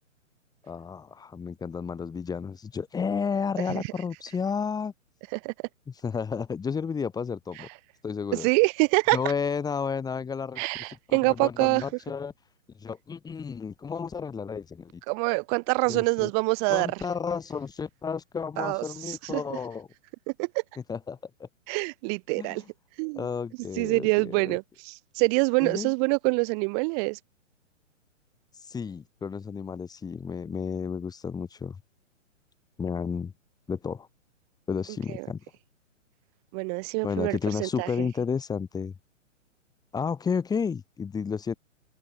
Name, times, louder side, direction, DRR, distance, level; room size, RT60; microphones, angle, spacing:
voice 1, 0.6-4.9 6.0-7.7 8.0-8.5 9.1-10.6 11.1-12.3 12.8-15.0 15.9-16.3 16.7-19.9 20.9-21.5 22.4-22.6 23.2-24.6 25.6-25.9 28.6-31.8 32.8-33.3 33.7-34.1 34.7-35.4 37.0-38.9 39.9-41.5, left 6 dB, 10° left, 5.4 m, -32 dB
voice 2, 8.3-9.2 10.6-11.8 15.1-16.9 18.6-19.4 20.4-20.6 21.7-22.6 23.0-23.3 23.8-27.2 35.1-35.3 36.5-38.1, right 39 dB, 30° right, 6.1 m, -26 dB
open air
figure-of-eight pair, 120°, 39 cm